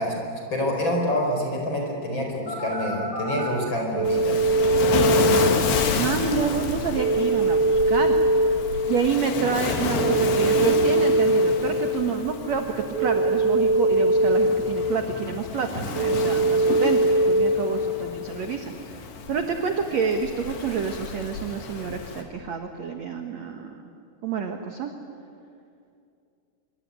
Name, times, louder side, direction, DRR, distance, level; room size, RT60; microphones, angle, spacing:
voice 1, 0.0-4.5, left 1 dB, 25° left, 1 dB, 5.0 m, -27 dB
Telephone, 2.5-3.5 4.0-5.5 7.0-8.5 10.0-11.5 13.0-14.5 16.0-17.5, right 2 dB, 35° right, 8.4 m, -21 dB
Waves surf, 4.0-22.2, left 5 dB, 70° left, 4.1 m, -30 dB
voice 2, 5.9-8.6 8.8-12.6 13.0-17.0 17.3-18.7 19.3-23.7 24.2-24.9, right 6 dB, 65° right, 5 dB, 1.8 m, -28 dB
26.0 x 24.0 x 9.6 m, 2.4 s
omnidirectional pair, 5.1 m